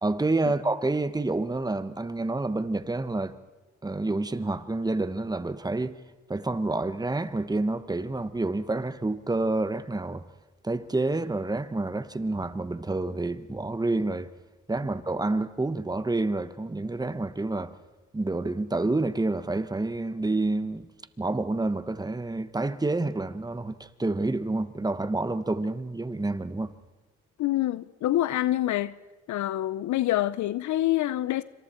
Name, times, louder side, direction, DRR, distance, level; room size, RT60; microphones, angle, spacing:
voice 1, 0.0-3.4 3.8-6.0 6.3-10.2 10.6-14.3 14.7-17.7 18.1-20.9 21.2-26.7, right 2 dB, 15° right, 1.1 m, -28 dB
voice 2, 27.4-28.9 29.3-31.4, left 14 dB, 70° left, 0.6 m, -26 dB
26.5 x 25.5 x 4.4 m
cardioid pair, 90°, 30 cm